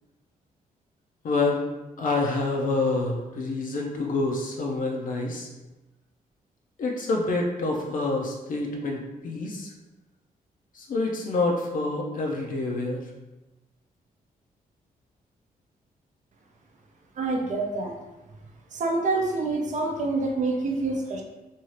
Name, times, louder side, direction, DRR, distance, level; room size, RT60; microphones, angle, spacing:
voice 1, 1.2-1.7 2.0-5.5 6.8-9.7 10.7-13.1, left 3 dB, 60° left, 0 dB, 0.5 m, -27 dB
voice 2, 17.2-18.0 18.7-21.2, right 3 dB, 55° right, 2 dB, 0.5 m, -27 dB
2.7 x 2.3 x 3.1 m, 1.1 s
cardioid pair, 95°, 15 cm